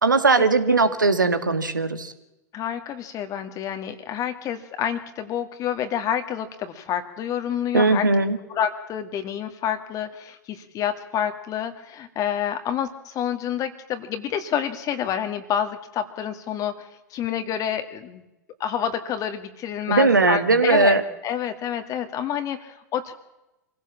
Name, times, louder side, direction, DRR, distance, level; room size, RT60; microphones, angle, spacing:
voice 1, 0.0-2.1 7.7-8.4 19.9-21.0, right 3 dB, 85° right, 10 dB, 1.8 m, -19 dB
voice 2, 2.5-8.1 8.5-16.9 17.1-18.2 18.6-23.1, left 9 dB, 35° left, 7 dB, 2.0 m, -28 dB
26.0 x 16.5 x 7.3 m, 0.94 s
figure-of-eight pair, 90°, 10 cm